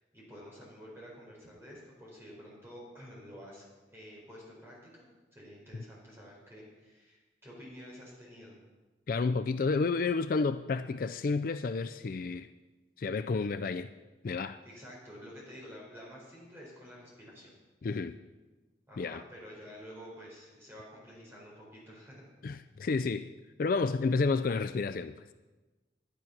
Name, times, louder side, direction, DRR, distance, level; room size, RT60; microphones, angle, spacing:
voice 1, 0.0-3.7 3.9-5.0 5.3-8.6 14.6-17.5 18.9-22.2, equal, 15° right, -5 dB, 4.7 m, -50 dB
voice 2, 9.1-12.5 13.0-13.9 14.2-14.6 17.8-18.1 19.0-19.2 22.4-23.3 23.6-25.3, left 4 dB, 45° left, 10 dB, 0.3 m, -30 dB
11.5 x 11.0 x 5.9 m, 1.2 s
head